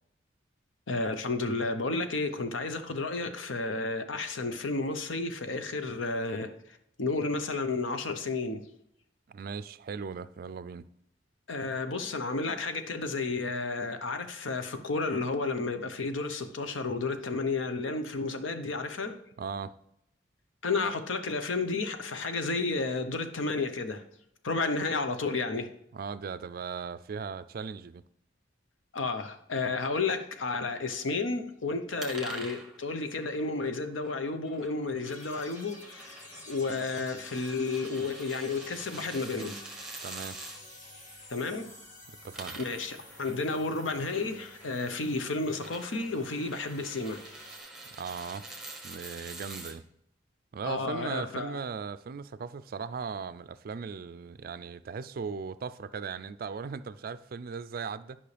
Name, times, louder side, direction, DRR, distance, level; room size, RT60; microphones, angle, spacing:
voice 1, 0.9-6.5 7.0-8.6 11.5-19.2 20.6-24.0 24.4-25.7 28.9-36.2 36.5-39.6 41.3-41.7 42.6-47.2 50.6-51.7, left 3 dB, 85° left, 0.8 m, -32 dB
voice 2, 9.3-10.9 19.4-19.7 25.9-28.0 40.0-40.4 42.1-42.6 47.9-48.5 48.8-49.8 50.5-58.2, right 5 dB, 50° right, 0.4 m, -38 dB
sound 1, 32.0-40.6 42.1-49.7, right 2 dB, ahead, 1.2 m, -46 dB
sound 2, 35.1-47.6, left 1 dB, 40° left, 1.8 m, -50 dB
11.0 x 5.5 x 3.3 m
head